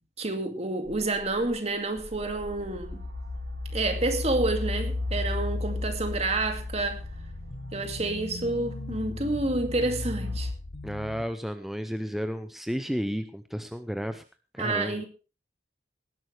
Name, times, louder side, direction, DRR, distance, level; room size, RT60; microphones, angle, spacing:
voice 1, 0.2-3.0 3.7-7.0 7.7-10.5 14.6-15.1, right 2 dB, 40° right, 2.3 m, -29 dB
sound 1, 0.8-11.3, left 2 dB, 80° left, 1.2 m, -42 dB
sound 2, 2.0-2.1 2.3-10.5, left 2 dB, 80° right, 2.3 m, -35 dB
voice 2, 10.8-14.2 14.5-15.0, equal, ahead, 0.7 m, -32 dB
19.0 x 11.0 x 3.3 m
head